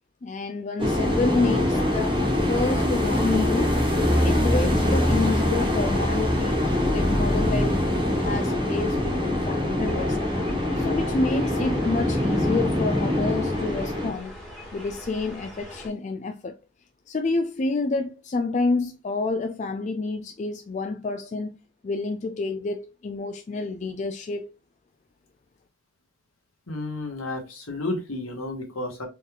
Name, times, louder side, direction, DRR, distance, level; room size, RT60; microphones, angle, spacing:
voice 1, 0.2-3.7 4.2-6.6 6.9-7.8 8.2-10.2 10.8-14.3 14.7-16.5 17.1-21.6 21.8-24.5, left 3 dB, 35° left, 0.3 m, -28 dB
sound 1, 0.8-14.1, left 1 dB, 25° right, 1.3 m, -23 dB
sound 2, 9.9-15.9, equal, 5° left, 1.5 m, -42 dB
voice 2, 26.7-29.1, left 2 dB, 75° left, 1.6 m, -32 dB
4.3 x 3.4 x 2.4 m
head